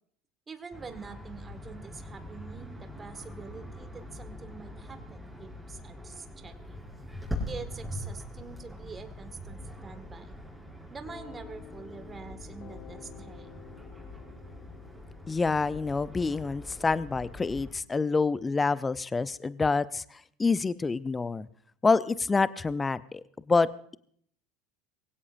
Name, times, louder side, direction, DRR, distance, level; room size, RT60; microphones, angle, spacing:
voice 1, 0.5-6.8 7.5-10.3 10.9-13.5, right 5 dB, 25° right, 9 dB, 1.9 m, -45 dB
sound 1, 0.7-17.7, left 1 dB, 5° right, 6.4 m, -43 dB
sound 2, 11.0-16.5, left 9 dB, 45° left, 1.1 m, -52 dB
voice 2, 15.3-21.5 21.8-23.7, left 4 dB, 20° left, 17 dB, 0.6 m, -27 dB
23.0 x 16.5 x 2.6 m, 0.62 s
hypercardioid pair, 75°, 0 cm